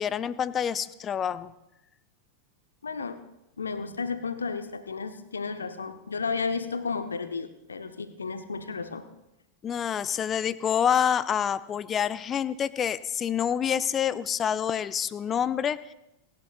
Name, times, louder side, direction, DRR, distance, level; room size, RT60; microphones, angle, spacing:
voice 1, 0.0-1.5 9.6-15.9, left 8 dB, 25° left, 17 dB, 0.5 m, -27 dB
voice 2, 2.8-3.2 3.6-9.1, left 4 dB, 75° left, 11 dB, 0.8 m, -33 dB
28.5 x 11.5 x 2.4 m, 0.88 s
figure-of-eight pair, 90°, 0 cm